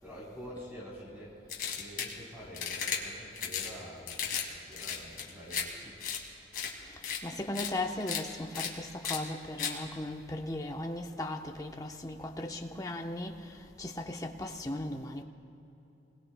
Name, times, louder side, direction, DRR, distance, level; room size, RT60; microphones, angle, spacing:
voice 1, 0.0-6.1, equal, 10° right, 3.7 m, -47 dB
sound 1, 1.5-2.1 2.5-3.0 3.4-3.7 4.1-4.5 4.7-5.6 6.0-6.2 6.5-6.7 7.0-7.2 7.5-7.7 8.0-8.2 8.5-8.7 9.0-9.2 9.6-9.7, left 7 dB, 45° left, 2.2 m, -34 dB
voice 2, 6.8-15.2, left 1 dB, 20° left, 0.8 m, -37 dB
30.0 x 21.5 x 2.2 m
head